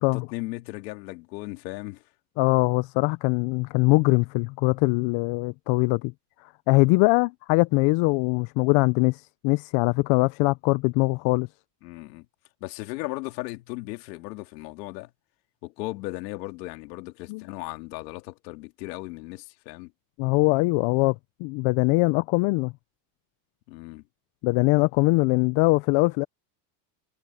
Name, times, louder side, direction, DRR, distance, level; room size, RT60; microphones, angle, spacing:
voice 1, 0.0-2.0 11.8-12.3 12.6-15.1 15.6-19.9 23.7-24.0, left 21 dB, 90° left, 2.6 m, -36 dB
voice 2, 2.4-6.1 6.4-11.5 17.3-17.4 20.2-21.1 21.4-22.7 24.4-26.2, left 25 dB, 70° left, 0.8 m, -22 dB
supercardioid pair, 105°, 49 cm